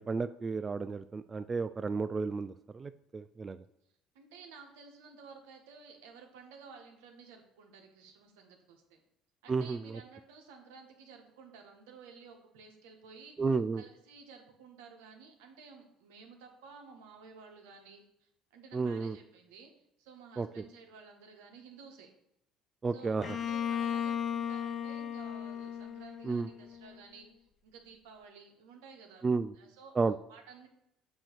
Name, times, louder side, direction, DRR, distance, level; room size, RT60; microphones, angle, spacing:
voice 1, 0.0-3.6 9.5-9.8 13.4-13.8 18.7-19.2 20.4-20.5 22.8-23.4 26.2-26.5 29.2-29.5 30.0-30.2, right 4 dB, 30° right, 12 dB, 0.3 m, -32 dB
voice 2, 4.1-9.0 9.4-13.4 13.8-19.7 20.0-22.1 22.9-27.3 27.6-29.9 30.3-30.7, right 5 dB, 85° right, 3 dB, 1.2 m, -53 dB
Bowed string instrument, 23.2-27.0, left 8 dB, 45° left, 0.4 m, -36 dB
7.7 x 2.9 x 5.7 m, 0.80 s
supercardioid pair, 80°, 0 cm